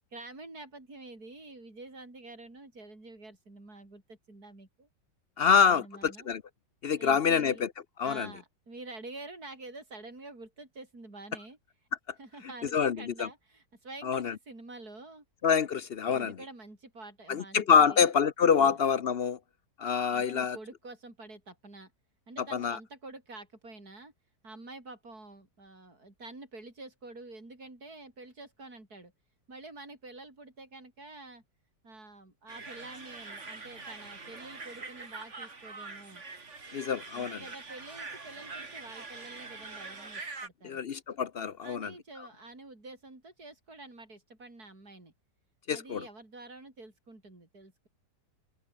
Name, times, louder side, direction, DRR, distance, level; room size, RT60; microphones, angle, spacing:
voice 1, 0.1-4.9 5.5-6.3 7.0-7.7 8.0-11.6 12.2-15.2 16.1-18.1 18.6-18.8 20.1-21.9 22.3-24.1 24.4-29.1 29.5-31.4 31.8-36.2 37.1-40.8 41.6-45.1 45.7-47.9, right 2 dB, 60° right, 7.3 m, -48 dB
voice 2, 5.4-6.4 6.8-7.7 8.0-8.3 12.7-13.3 14.0-14.3 15.4-16.3 17.3-19.4 19.8-20.6 22.5-22.8 36.7-37.4 40.6-41.9 45.7-46.0, left 6 dB, 55° left, 0.7 m, -26 dB
sound 1, 32.5-40.5, right 3 dB, 40° right, 3.0 m, -44 dB
omnidirectional pair, 1.9 m